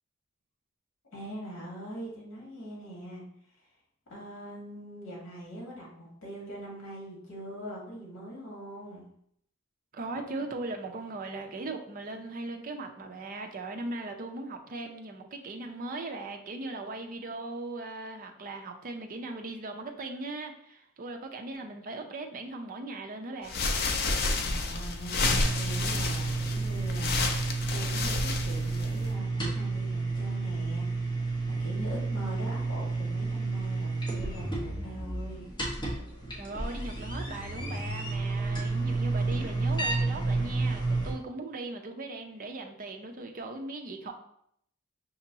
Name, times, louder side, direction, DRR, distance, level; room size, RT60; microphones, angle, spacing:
voice 1, 1.1-3.2 4.1-9.1 24.4-35.5, equal, 65° left, -3 dB, 1.5 m, -42 dB
voice 2, 9.9-23.5 36.3-44.1, right 2 dB, 40° right, 4 dB, 0.5 m, -39 dB
sound 1, 23.4-29.1, left 3 dB, 45° left, 0.5 m, -30 dB
sound 2, 25.2-41.1, right 3 dB, 20° left, 1.0 m, -31 dB
5.9 x 2.8 x 2.7 m, 0.71 s
head